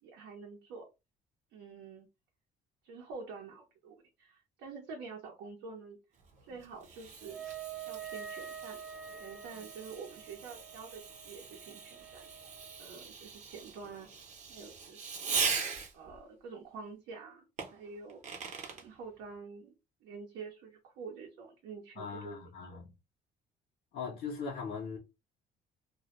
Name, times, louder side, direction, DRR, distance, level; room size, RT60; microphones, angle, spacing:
voice 1, 0.0-0.9 1.5-2.1 2.8-6.0 6.4-7.4 7.9-8.8 9.1-12.3 12.8-14.1 14.5-15.4 15.9-17.4 17.7-18.2 18.7-19.7 20.0-22.4 22.7-22.8, right 5 dB, 90° right, 0.7 m, -47 dB
Fireworks, 6.2-16.2 17.6-18.9, right 5 dB, 45° right, 0.7 m, -40 dB
Wind instrument woodwind instrument, 7.3-12.9, right 8 dB, ahead, 0.3 m, -47 dB
voice 2, 22.0-23.0 23.9-25.0, left 5 dB, 65° left, 0.7 m, -40 dB
2.2 x 2.0 x 2.9 m
cardioid pair, 110°, 17 cm